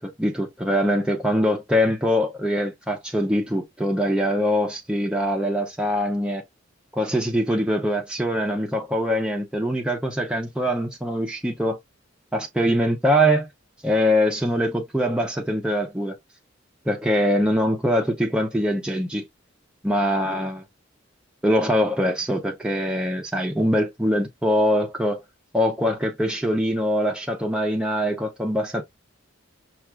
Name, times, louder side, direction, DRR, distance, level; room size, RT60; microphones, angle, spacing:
voice 1, 0.0-6.4 6.9-11.8 12.3-13.5 13.8-16.1 16.9-19.3 19.8-20.6 21.4-25.2 25.5-28.8, equal, 5° right, 0.5 m, -23 dB
5.8 x 2.3 x 2.2 m
head